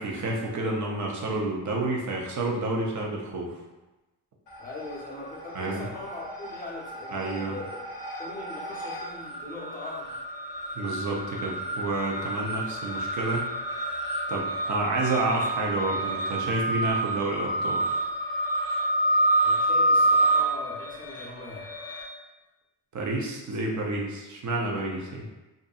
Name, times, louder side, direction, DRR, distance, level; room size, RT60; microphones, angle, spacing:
voice 1, 0.0-3.6 5.6-5.8 7.1-7.5 10.8-13.5 14.3-17.9 22.9-25.2, right 2 dB, 45° right, -1 dB, 0.6 m, -29 dB
sound 1, 4.5-5.2 5.4-22.0, right 1 dB, 55° left, 0.7 m, -28 dB
voice 2, 4.6-7.8 8.2-10.2 19.4-21.7, left 2 dB, 20° left, -5 dB, 0.7 m, -40 dB
2.6 x 2.6 x 2.3 m, 1.1 s
cardioid pair, 105°, 43 cm